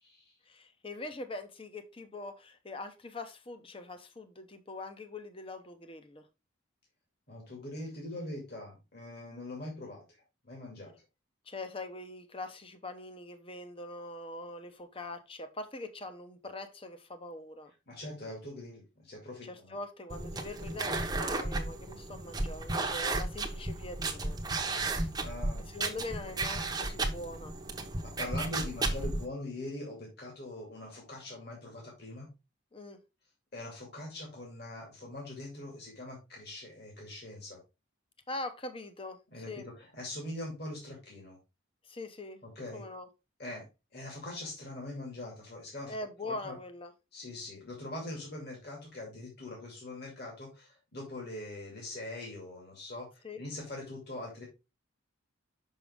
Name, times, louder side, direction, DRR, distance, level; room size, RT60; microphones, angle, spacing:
voice 1, 0.5-6.3 11.5-17.7 19.4-24.4 24.9-25.1 25.6-27.5 32.7-33.0 38.3-39.7 41.8-42.4 42.7-43.1 45.9-46.9 53.2-53.4, left 2 dB, 25° left, 0.8 m, -43 dB
voice 2, 7.3-10.0 10.4-10.9 17.9-19.8 25.2-25.7 28.0-32.3 33.5-37.6 39.3-39.5 39.8-41.4 42.6-42.8 43.4-43.6 43.9-45.9 46.2-46.6 47.1-53.1 53.3-54.5, left 1 dB, 50° left, 2.3 m, -42 dB
sound 1, 20.1-29.3, right 2 dB, 20° right, 0.8 m, -34 dB
6.1 x 5.5 x 3.4 m
head